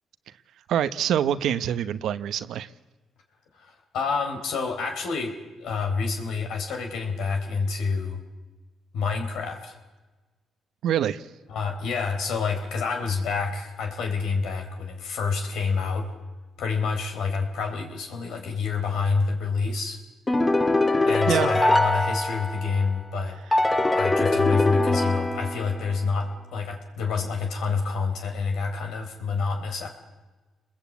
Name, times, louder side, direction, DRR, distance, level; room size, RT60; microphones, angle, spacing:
voice 1, 0.7-2.7 10.8-11.3 21.3-21.5, right 10 dB, 75° right, 13 dB, 0.9 m, -25 dB
voice 2, 3.5-8.2 8.9-9.8 11.5-16.1 16.6-20.0 21.1-23.4 24.0-29.9, left 4 dB, 80° left, 5 dB, 3.9 m, -28 dB
sound 1, 20.3-22.9 23.5-26.0, left 2 dB, 20° left, 1.8 m, -23 dB
29.0 x 21.0 x 8.5 m, 1.2 s
cardioid pair, 90°, 0 cm